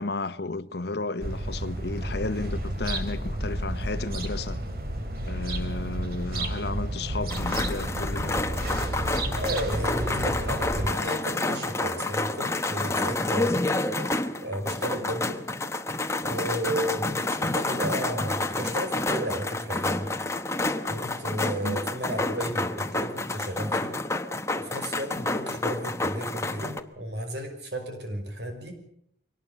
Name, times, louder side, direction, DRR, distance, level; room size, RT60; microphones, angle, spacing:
voice 1, 0.0-4.6 5.2-8.4 21.6-21.8, left 3 dB, 65° left, 0.9 m, -33 dB
sound 1, 1.2-10.9, right 1 dB, 50° right, 2.9 m, -31 dB
sound 2, 7.3-26.8, left 2 dB, 15° left, 1.0 m, -29 dB
voice 2, 9.4-13.6 14.4-15.4 16.2-20.1 20.8-24.0 24.6-28.8, right 1 dB, 70° right, 5.6 m, -33 dB
24.0 x 18.5 x 6.9 m
head